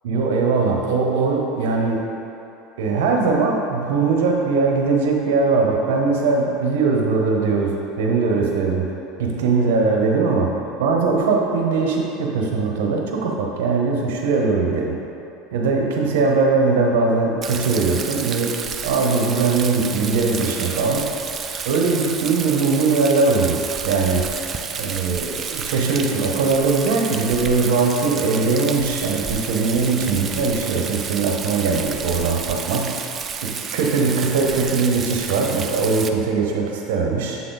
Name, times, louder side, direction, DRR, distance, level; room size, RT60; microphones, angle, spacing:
voice 1, 0.0-2.0 2.8-8.9 9.2-10.5 10.8-14.9 15.5-18.5 18.8-21.0 21.6-24.3 24.7-33.0 33.4-37.4, right 4 dB, 85° right, 0 dB, 0.9 m, -20 dB
Rain, 17.4-36.1, right 6 dB, 30° right, 0.3 m, -31 dB
7.4 x 3.9 x 3.9 m, 2.9 s
supercardioid pair, 125°, 0 cm